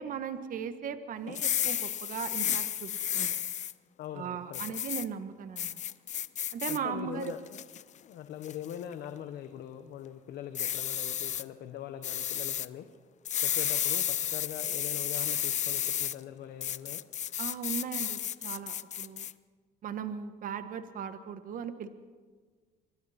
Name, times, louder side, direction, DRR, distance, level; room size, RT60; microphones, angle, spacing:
voice 1, 0.0-3.4 4.1-5.8 6.5-7.3 17.4-19.3 19.8-21.9, right 7 dB, 55° right, 10 dB, 1.4 m, -38 dB
sound 1, 1.3-3.7 4.5-5.1 5.6-6.8 7.2-7.8 8.4-8.7 10.5-11.4 12.0-12.7 13.3-16.2 16.6-19.3, left 10 dB, 45° left, 0.6 m, -32 dB
voice 2, 4.0-4.8 6.7-7.4 8.0-12.9 13.4-17.0, left 10 dB, 75° left, 7 dB, 1.3 m, -42 dB
26.0 x 23.5 x 4.3 m, 1.5 s
cardioid pair, 110°, 17 cm